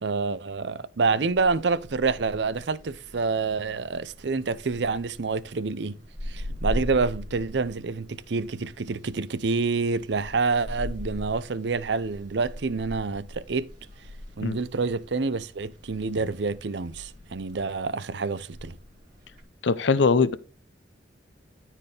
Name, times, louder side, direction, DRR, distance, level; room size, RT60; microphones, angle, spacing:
voice 1, 0.0-6.0 6.3-13.7 14.4-18.8, right 4 dB, 65° right, 0.6 m, -27 dB
sound 1, 1.0-19.4, left 1 dB, 45° right, 2.7 m, -41 dB
voice 2, 19.6-20.3, left 4 dB, 75° left, 0.6 m, -21 dB
13.5 x 4.6 x 3.3 m
head